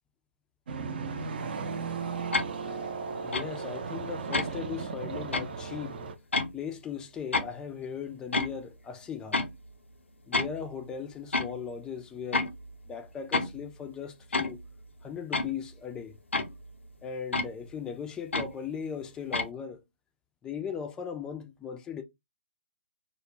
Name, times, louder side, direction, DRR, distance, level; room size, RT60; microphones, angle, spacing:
sound 1, 0.7-6.1, right 5 dB, 55° right, 0.6 m, -36 dB
sound 2, 2.3-2.5 3.3-3.5 4.3-4.5 5.3-5.5 6.3-6.5 7.3-7.5 8.3-8.6 9.3-9.5 10.3-10.7 11.3-11.6 12.3-12.7 13.3-13.6 14.3-14.7 15.3-15.5 16.3-16.7 17.3-17.5 18.3-18.5 19.3-19.5, left 3 dB, 85° left, 0.5 m, -29 dB
voice 1, 3.2-6.0 6.5-9.4 10.3-12.5 12.9-14.6 15.0-16.2 17.0-19.8 20.4-22.0, left 7 dB, 10° left, 0.4 m, -38 dB
2.3 x 2.1 x 3.0 m
figure-of-eight pair, 130°, 6 cm